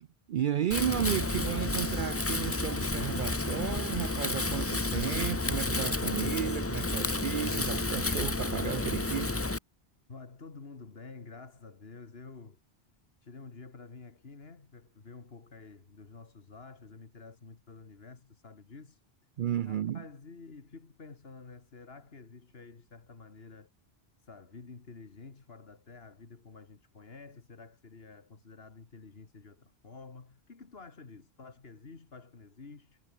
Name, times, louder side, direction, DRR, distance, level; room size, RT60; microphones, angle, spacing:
voice 1, 0.0-9.5 19.4-20.0, right 10 dB, 60° right, 0.6 m, -33 dB
Wind, 0.7-9.6, left 2 dB, 15° left, 0.6 m, -31 dB
voice 2, 10.1-12.6 13.2-19.0 19.6-23.7 24.2-33.0, left 4 dB, 65° left, 2.3 m, -50 dB
omnidirectional pair, 1.1 m